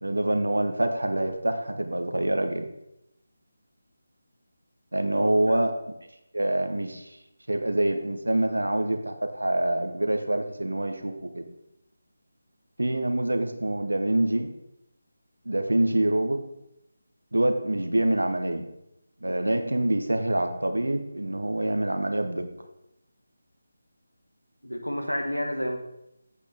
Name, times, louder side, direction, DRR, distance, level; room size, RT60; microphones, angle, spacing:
voice 1, 0.0-2.7 4.9-5.7 6.3-7.2 7.5-11.4 12.8-14.5 15.4-16.4 17.3-18.6 19.2-22.4, right 1 dB, 70° right, 6 dB, 1.1 m, -26 dB
voice 2, 5.1-5.7 24.6-25.8, equal, 85° left, 3 dB, 1.7 m, -31 dB
8.4 x 8.1 x 3.6 m, 0.84 s
figure-of-eight pair, 155°, 0 cm